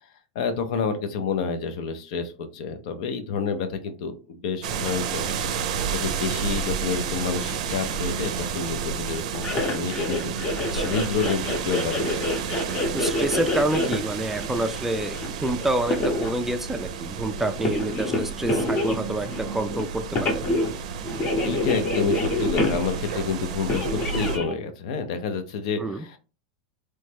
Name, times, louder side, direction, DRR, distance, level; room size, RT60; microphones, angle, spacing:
voice 1, 0.3-5.2 5.8-10.3 10.8-12.1 21.4-26.2, left 5 dB, 65° left, 9 dB, 0.5 m, -29 dB
sound 1, 4.6-24.4, right 7 dB, 70° right, 0.4 m, -31 dB
sound 2, 9.4-16.3 17.4-19.8 20.1-20.7 21.0-23.1 23.7-24.6, left 2 dB, 35° left, 0.8 m, -27 dB
voice 2, 12.9-20.4 25.8-26.0, right 1 dB, 10° right, 7 dB, 0.3 m, -28 dB
3.1 x 2.1 x 3.2 m, 0.35 s
hypercardioid pair, 115°, 4 cm